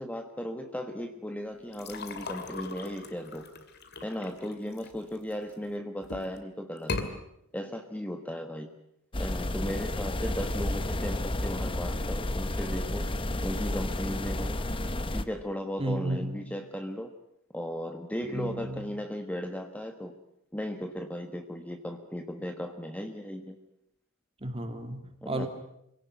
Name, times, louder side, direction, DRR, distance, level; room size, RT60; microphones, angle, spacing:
voice 1, 0.0-3.4 4.0-7.1 7.5-8.7 9.2-13.0 13.4-14.6 15.1-17.1 17.5-20.1 20.5-23.6 25.2-25.5, equal, 5° left, 6 dB, 1.3 m, -36 dB
sound 1, 1.7-5.5 6.0-6.4 6.8-7.1, left 3 dB, 50° left, 2.4 m, -38 dB
sound 2, 9.1-15.2, left 1 dB, 25° left, 1.1 m, -31 dB
voice 2, 15.8-16.4 18.3-18.8 24.4-25.5, right 1 dB, 30° right, 6 dB, 2.9 m, -33 dB
25.5 x 17.5 x 9.4 m, 0.81 s
head